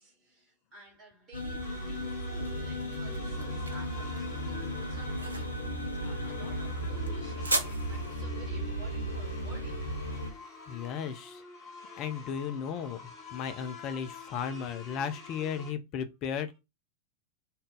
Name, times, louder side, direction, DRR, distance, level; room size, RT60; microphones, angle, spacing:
voice 1, 0.0-10.0, right 1 dB, 25° right, 1.2 m, -53 dB
sound 1, 1.3-10.3, equal, 80° left, 0.6 m, -35 dB
sound 2, 1.6-15.7, left 4 dB, 15° left, 1.5 m, -49 dB
sound 3, 2.0-11.0, right 2 dB, 80° right, 0.5 m, -39 dB
voice 2, 10.7-11.4 12.0-13.0 13.3-16.6, left 7 dB, 40° left, 0.5 m, -35 dB
2.7 x 2.4 x 3.5 m
figure-of-eight pair, 90°, 0 cm